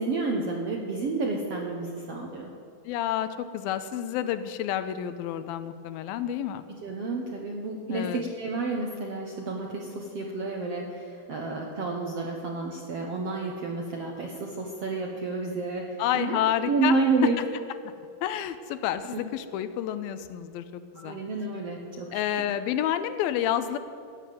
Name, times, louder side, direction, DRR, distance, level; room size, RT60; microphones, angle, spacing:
voice 1, 0.0-2.5 6.8-17.4 19.1-19.2 21.0-22.2, right 3 dB, 65° right, 0 dB, 1.5 m, -30 dB
voice 2, 2.9-6.6 7.9-8.2 16.0-17.0 18.2-21.2 22.1-23.8, left 10 dB, 85° left, 11 dB, 2.5 m, -29 dB
14.5 x 9.4 x 7.7 m, 2.4 s
omnidirectional pair, 4.2 m